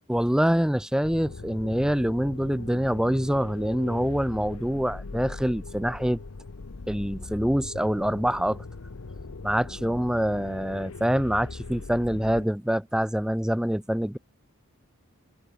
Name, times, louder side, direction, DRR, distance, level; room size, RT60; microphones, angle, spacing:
voice 1, 0.1-6.2 6.9-8.6 9.4-14.2, equal, 5° right, 0.5 m, -25 dB
sound 1, 1.0-12.4, left 3 dB, 75° left, 0.8 m, -40 dB
head